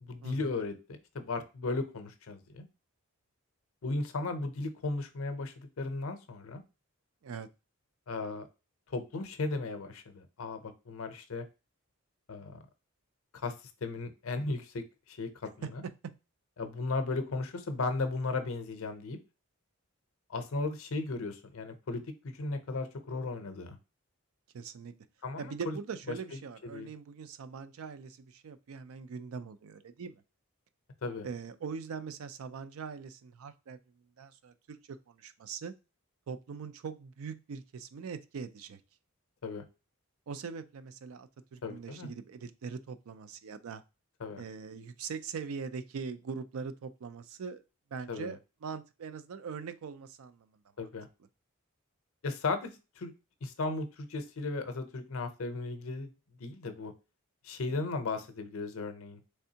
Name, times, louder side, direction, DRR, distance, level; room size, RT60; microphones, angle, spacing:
voice 1, 0.0-0.8 1.1-2.6 3.8-6.6 8.1-8.5 8.9-11.5 12.3-12.6 13.3-13.5 13.8-15.3 15.6-15.8 16.6-19.2 20.3-23.8 25.2-25.8 26.6-26.9 31.0-31.3 39.4-39.7 41.6-42.1 44.2-44.4 48.1-48.3 50.8-51.1 52.2-53.1 53.4-56.1 56.4-56.9 57.4-59.2, left 3 dB, 65° left, 8 dB, 0.6 m, -36 dB
voice 2, 24.5-24.9 25.4-30.2 31.2-33.8 34.2-35.7 36.3-38.8 40.3-43.8 44.4-47.6 47.9-50.5, right 5 dB, 70° right, 12 dB, 0.4 m, -42 dB
3.4 x 3.4 x 2.7 m, 0.29 s
head